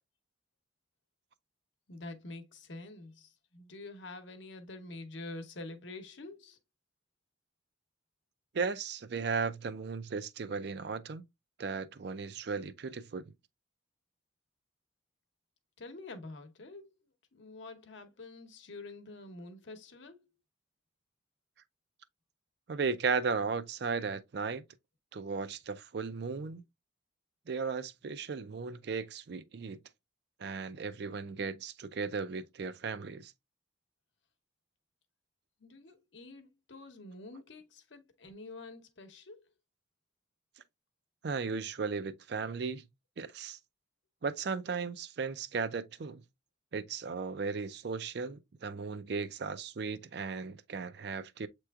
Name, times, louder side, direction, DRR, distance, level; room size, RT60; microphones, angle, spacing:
voice 1, 1.9-6.6 15.8-16.9 17.3-20.3 35.6-39.5, left 2 dB, 70° left, 0.9 m, -47 dB
voice 2, 8.5-11.2 11.6-13.3 22.7-24.6 25.1-26.6 27.5-29.8 30.4-33.3 41.2-42.8 43.2-43.6 44.2-46.2 46.7-51.5, right 5 dB, 60° right, 0.4 m, -36 dB
7.6 x 3.0 x 2.3 m
head